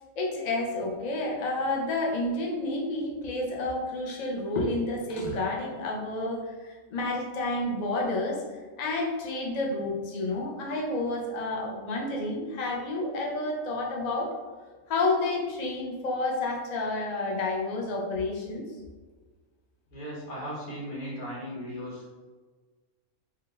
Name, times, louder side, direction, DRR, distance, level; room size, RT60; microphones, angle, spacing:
voice 1, 0.2-8.4 8.8-14.3 14.9-18.7, left 2 dB, 45° left, -1 dB, 0.5 m, -30 dB
voice 2, 19.9-22.2, equal, 80° left, -6 dB, 1.7 m, -37 dB
3.9 x 2.6 x 3.2 m, 1.4 s
omnidirectional pair, 1.5 m